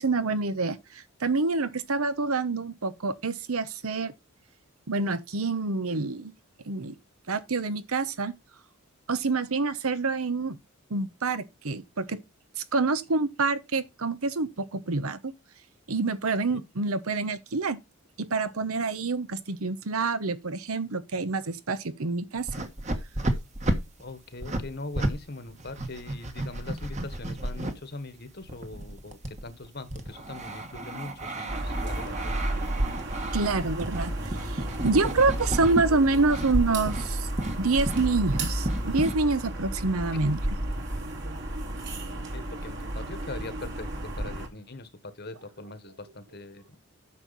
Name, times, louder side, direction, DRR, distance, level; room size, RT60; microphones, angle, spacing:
voice 1, 0.0-4.1 4.9-6.3 6.7-6.9 7.3-8.3 9.1-10.6 10.9-12.2 12.6-15.3 15.9-17.8 18.2-22.5 33.3-34.1 34.4-37.3 37.6-40.4, right 3 dB, 80° right, 1.0 m, -27 dB
sound 1, 22.4-25.2 25.5-27.7 28.4-35.9 36.1-36.6 36.9-37.1 37.4-39.1, right 1 dB, 30° right, 1.4 m, -33 dB
voice 2, 24.0-32.5 40.1-40.2 41.9-43.9 44.2-46.8, left 2 dB, 45° left, 1.3 m, -41 dB
sound 2, 31.5-44.5, right 1 dB, 55° right, 2.5 m, -32 dB
9.7 x 6.4 x 4.0 m
head